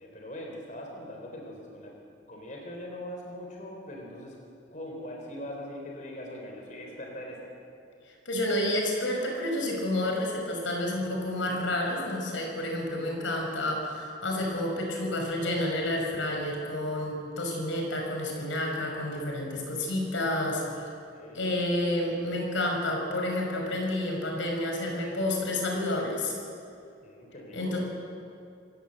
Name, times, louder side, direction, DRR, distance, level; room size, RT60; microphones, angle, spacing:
voice 1, 0.0-2.0 2.3-4.4 4.7-7.5 21.1-21.5 27.0-27.8, left 1 dB, 40° left, 0 dB, 4.0 m, -41 dB
voice 2, 8.3-20.8 21.3-26.3 27.5-27.8, left 1 dB, 85° left, 1 dB, 5.6 m, -30 dB
27.0 x 16.5 x 7.9 m, 2.5 s
head